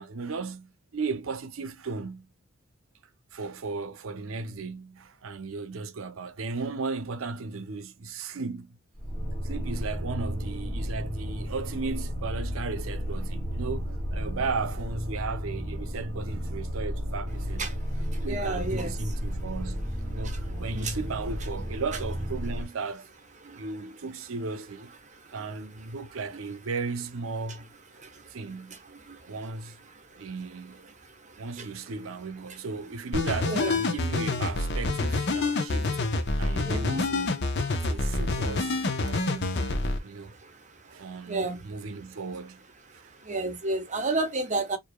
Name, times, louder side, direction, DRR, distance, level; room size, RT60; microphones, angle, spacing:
voice 1, 0.0-2.3 3.3-8.8 9.4-17.7 18.2-23.1 23.6-24.9 25.3-28.8 29.3-29.8 30.2-30.9 31.4-36.0 36.4-37.5 37.8-39.7 40.0-40.3 40.9-42.6 42.9-43.1, right 4 dB, 75° right, 0.6 m, -35 dB
sound 1, 9.0-22.6, equal, 10° left, 2.2 m, -33 dB
voice 2, 18.3-18.9 20.2-20.9 23.4-23.7 25.2-25.3 28.0-28.3 28.7-28.8 29.0-29.3 30.1-30.3 31.0-31.7 33.5-33.8 36.6-37.0 39.1-39.2 40.0-41.6 43.1-44.8, right 2 dB, 35° right, 0.9 m, -33 dB
sound 2, 33.1-40.0, left 2 dB, 55° left, 0.7 m, -27 dB
4.7 x 2.6 x 2.2 m
head